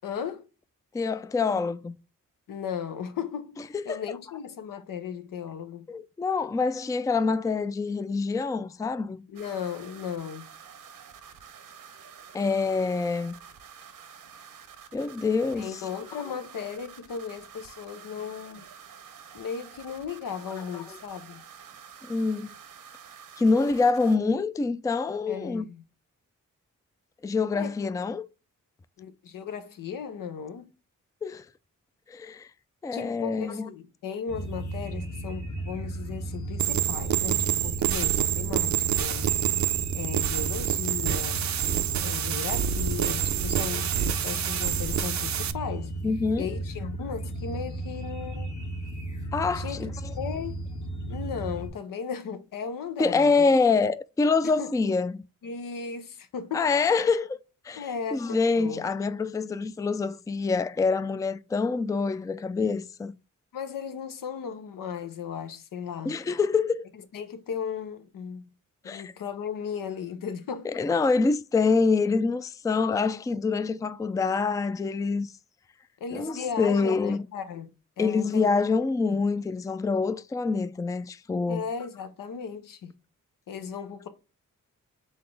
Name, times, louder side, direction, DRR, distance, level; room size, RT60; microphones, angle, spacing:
voice 1, 0.0-0.5 2.5-5.9 9.3-10.4 15.6-18.6 19.3-21.4 25.3-25.8 27.5-27.7 29.0-30.7 32.9-39.3 39.9-41.5 42.0-43.9 44.2-45.9 46.4-48.6 49.5-50.6 51.1-53.5 54.6-54.7 55.4-56.7 57.8-58.8 63.5-66.2 67.1-68.5 68.8-70.8 76.0-77.7 78.0-78.5 79.1-79.2 81.5-82.9 83.5-84.1, left 7 dB, 85° left, 0.7 m, -36 dB
voice 2, 0.9-2.0 3.7-4.0 5.9-9.2 12.3-13.3 14.9-15.7 22.1-22.5 23.4-25.7 27.2-28.3 31.2-31.5 32.1-32.5 32.8-33.7 46.0-46.5 49.3-50.1 53.0-55.2 56.5-57.4 57.7-63.1 66.1-66.8 68.9-69.1 70.6-75.3 76.1-77.2 78.0-81.6, left 4 dB, 10° left, 0.3 m, -26 dB
sound 1, 9.3-24.2, right 7 dB, 85° right, 0.9 m, -49 dB
sound 2, 34.3-51.7, right 1 dB, 60° left, 1.5 m, -35 dB
sound 3, 36.6-45.5, right 10 dB, 60° right, 0.5 m, -27 dB
4.0 x 3.8 x 3.2 m
cardioid pair, 55°, 32 cm